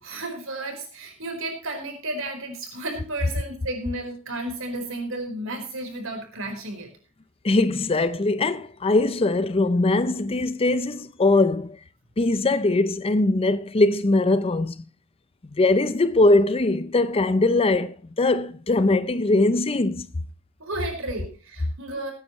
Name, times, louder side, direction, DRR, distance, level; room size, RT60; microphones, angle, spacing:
voice 1, 0.0-6.9 20.6-22.1, right 2 dB, 65° right, 4.4 m, -33 dB
voice 2, 7.4-11.8 12.2-14.8 15.5-20.1, left 2 dB, 25° left, 0.5 m, -21 dB
20.5 x 9.7 x 3.1 m
head